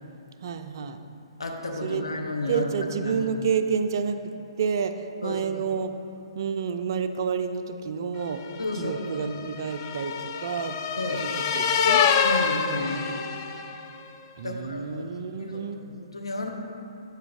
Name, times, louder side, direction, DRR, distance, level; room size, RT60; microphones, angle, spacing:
voice 1, 0.4-1.0 1.8-2.0 2.5-4.2 4.6-5.9 6.4-8.4 8.7-10.8 11.2-12.0 14.4-15.9, right 6 dB, 45° right, 8 dB, 0.3 m, -29 dB
voice 2, 1.4-2.7 3.0-3.2 5.2-5.7 8.6-9.3 11.0-11.3 12.2-13.0 14.4-15.0 15.4-16.5, left 2 dB, 75° left, 2 dB, 0.7 m, -32 dB
sound 1, 8.4-13.9, left 7 dB, 35° left, 0.3 m, -26 dB
8.0 x 5.9 x 2.4 m, 2.9 s
figure-of-eight pair, 125°, 3 cm